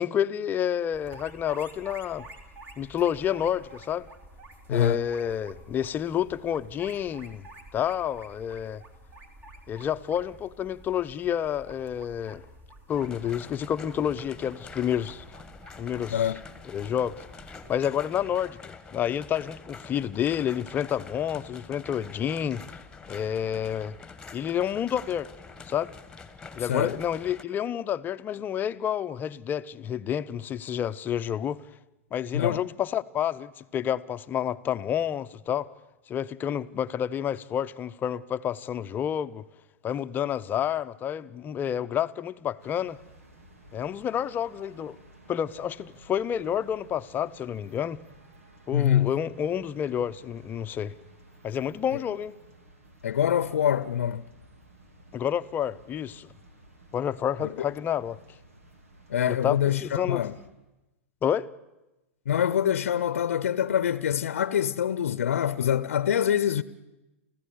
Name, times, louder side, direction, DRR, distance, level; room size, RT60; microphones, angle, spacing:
voice 1, 0.0-2.3 2.8-4.1 4.7-7.4 7.7-8.8 9.7-12.4 12.9-15.2 15.8-16.3 16.7-17.2 17.7-22.6 23.1-24.0 24.3-25.3 25.7-25.9 26.5-31.6 32.1-35.7 36.1-39.4 39.8-43.0 43.7-45.0 45.3-48.0 48.7-50.9 51.4-52.3 55.1-56.3 56.9-58.2 59.3-60.2 61.2-61.5, left 9 dB, 25° left, 0.8 m, -29 dB
sound 1, 0.9-17.8, right 2 dB, 30° right, 3.8 m, -50 dB
voice 2, 4.7-5.1 16.1-16.4 26.6-27.0 32.3-32.7 48.7-49.2 51.9-52.0 53.0-54.2 57.4-57.7 59.1-60.4 62.3-66.6, left 9 dB, 70° left, 0.8 m, -25 dB
sound 2, 12.9-27.4, left 4 dB, 10° left, 1.8 m, -46 dB
sound 3, 42.6-60.5, right 1 dB, 85° right, 4.0 m, -54 dB
29.0 x 15.5 x 8.6 m
hypercardioid pair, 105°, 8 cm